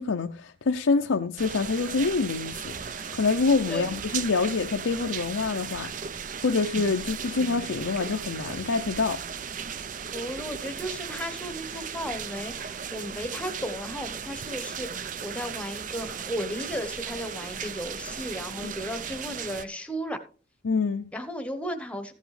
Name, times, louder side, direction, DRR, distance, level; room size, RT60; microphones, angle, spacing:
voice 1, 0.0-9.2 18.6-18.7 20.6-21.1, left 4 dB, 85° left, 0.6 m, -26 dB
sound 1, 1.4-19.6, right 7 dB, 40° right, 0.4 m, -36 dB
voice 2, 10.1-20.2 21.1-22.1, equal, 5° left, 1.0 m, -35 dB
14.5 x 8.2 x 3.2 m
head